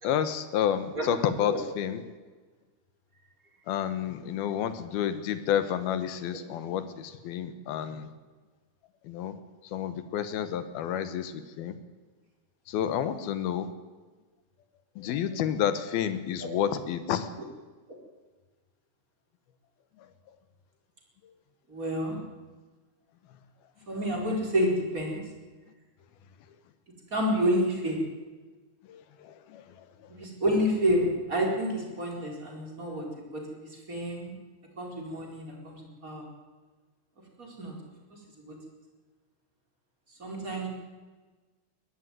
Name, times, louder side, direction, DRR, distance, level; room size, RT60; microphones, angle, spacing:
voice 1, 0.0-2.0 3.7-6.8 7.2-8.1 9.1-9.3 9.7-11.3 11.6-11.7 12.7-13.7 15.0-17.3, left 9 dB, 75° left, 12 dB, 2.9 m, -29 dB
voice 2, 21.7-22.2 23.9-25.2 27.1-28.0 30.2-33.1 33.3-33.4 33.9-34.4 34.8-36.3 37.4-37.7 38.5-38.6 40.2-40.7, equal, 20° right, 0 dB, 4.5 m, -29 dB
21.5 x 14.0 x 9.4 m, 1.3 s
omnidirectional pair, 4.6 m